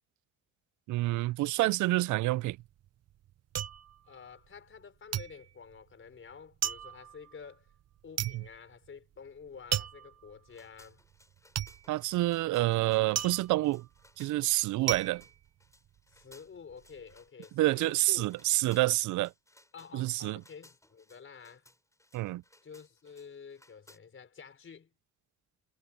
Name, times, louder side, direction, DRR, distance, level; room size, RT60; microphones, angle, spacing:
voice 1, 0.9-2.6 8.2-8.4 11.9-13.9 14.2-15.2 17.6-19.3 19.9-20.4 22.1-22.4, right 18 dB, 75° right, 0.5 m, -28 dB
sound 1, 2.4-4.8 5.1-16.2 16.6-17.2, right 11 dB, 55° right, 0.8 m, -37 dB
voice 2, 4.0-7.7 8.0-11.0 16.1-18.3 19.7-21.7 22.6-24.9, left 6 dB, 45° left, 5.1 m, -50 dB
sound 2, 10.5-24.0, left 1 dB, 10° left, 6.8 m, -62 dB
cardioid pair, 90°, 30 cm